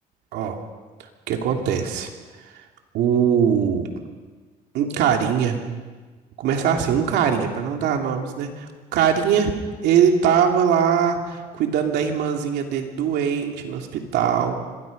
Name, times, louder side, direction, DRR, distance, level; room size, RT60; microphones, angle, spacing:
voice 1, 1.3-2.1 2.9-3.9 4.7-5.6 6.4-9.5 9.8-14.6, right 8 dB, 80° right, 3 dB, 2.9 m, -21 dB
25.5 x 21.0 x 5.4 m, 1.4 s
cardioid pair, 110°, 17 cm